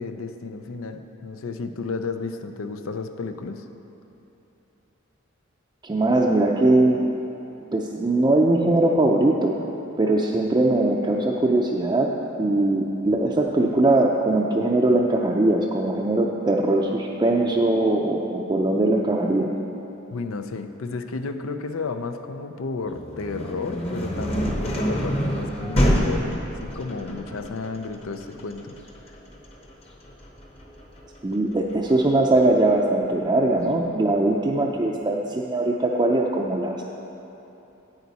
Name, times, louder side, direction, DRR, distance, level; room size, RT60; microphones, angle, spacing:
voice 1, 0.0-3.6 20.1-28.8, left 4 dB, 90° left, 8 dB, 0.5 m, -32 dB
voice 2, 5.8-7.0 7.7-9.5 10.0-12.1 12.4-19.5 31.2-36.8, right 2 dB, 20° right, -2 dB, 0.4 m, -21 dB
sound 1, 22.9-32.7, equal, 30° left, 0.9 m, -27 dB
9.4 x 9.0 x 4.1 m, 3.0 s
head